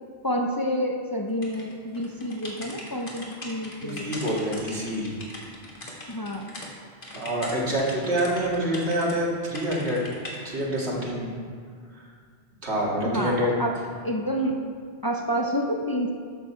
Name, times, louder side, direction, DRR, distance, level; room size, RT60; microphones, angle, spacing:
voice 1, 0.2-4.2 6.1-6.5 13.0-13.8 14.0-14.6 15.0-16.1, equal, 25° left, 2 dB, 0.5 m, -28 dB
sound 1, 1.4-6.7 7.0-9.1 9.5-10.4, left 1 dB, 55° left, 1.8 m, -40 dB
voice 2, 3.8-5.1 7.1-10.0 10.4-11.3 11.9-12.0 12.6-13.5, equal, 90° right, -4 dB, 2.2 m, -26 dB
12.5 x 6.6 x 4.4 m, 2.1 s
omnidirectional pair, 1.1 m